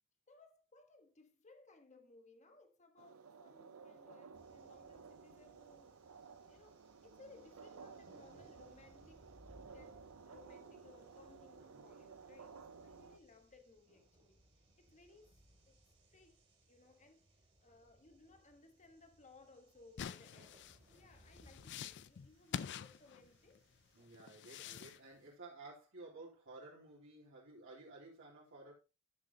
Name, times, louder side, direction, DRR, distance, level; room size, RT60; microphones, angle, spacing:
voice 1, 0.3-6.0 6.5-9.3 9.7-15.4 15.7-15.8 16.1-23.6, left 3 dB, 35° left, 1.3 m, -63 dB
sound 1, 3.0-13.2, right 5 dB, 80° right, 0.7 m, -56 dB
sound 2, 4.3-24.1, right 1 dB, 30° right, 2.8 m, -67 dB
sound 3, 20.0-23.6 24.1-25.0, left 8 dB, 55° left, 0.4 m, -46 dB
voice 2, 23.9-28.7, right 2 dB, 60° right, 3.1 m, -54 dB
12.0 x 6.4 x 2.8 m
head